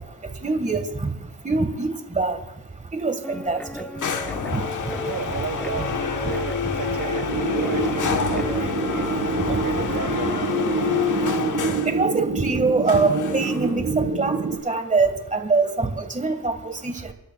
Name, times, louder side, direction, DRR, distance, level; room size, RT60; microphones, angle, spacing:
voice 1, 0.4-1.1 1.4-2.4 2.9-3.6 4.5-4.6 9.5-9.6 11.9-14.3 14.6-16.6 16.8-16.9, right 3 dB, 20° right, 7 dB, 1.7 m, -23 dB
Guitar, 3.2-8.7, equal, 5° left, 0.9 m, -35 dB
sound 1, 4.0-12.0 12.9-13.8, left 7 dB, 60° left, 1.2 m, -27 dB
voice 2, 5.0-9.1 9.5-10.5, right 7 dB, 60° right, 10 dB, 1.4 m, -34 dB
sound 2, 7.3-14.6, right 4 dB, 40° right, 1.9 m, -26 dB
29.5 x 12.5 x 2.3 m, 0.97 s
cardioid pair, 80°, 35 cm